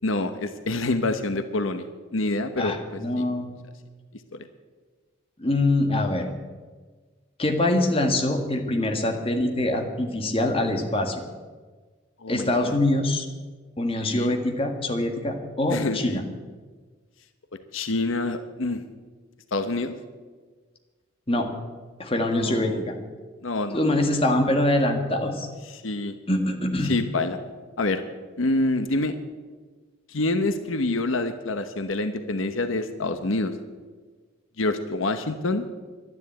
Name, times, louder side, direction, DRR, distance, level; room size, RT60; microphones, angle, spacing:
voice 1, 0.0-1.9 2.1-2.7 3.2-3.3 4.3-4.4 12.2-12.8 14.0-14.3 15.7-16.2 17.7-18.8 19.5-19.9 22.2-22.8 23.4-23.8 24.1-24.2 25.7-26.1 26.8-27.4 27.8-28.0 28.4-29.1 30.1-33.5 34.6-35.6, left 2 dB, 80° left, 9 dB, 1.0 m, -26 dB
voice 2, 2.6-3.5 5.4-6.3 7.4-11.2 12.3-13.2 13.8-16.2 21.3-21.5 22.0-22.9 23.7-25.5 26.3-26.9, left 1 dB, 30° left, 3 dB, 1.7 m, -24 dB
12.0 x 10.5 x 8.5 m, 1.4 s
head